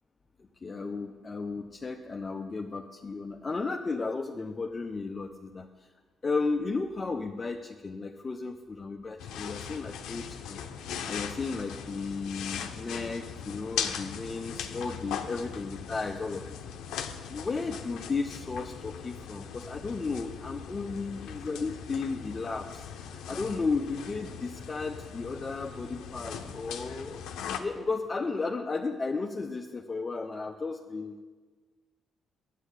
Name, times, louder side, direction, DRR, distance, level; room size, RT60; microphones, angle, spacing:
voice 1, 0.4-5.7 6.2-10.6 11.0-16.5 17.3-27.2 27.6-31.2, left 4 dB, 30° left, 2 dB, 0.8 m, -34 dB
sound 1, 9.2-27.6, left 8 dB, 85° left, 0.9 m, -39 dB
9.8 x 8.3 x 8.4 m, 1.4 s
cardioid pair, 90°, 0 cm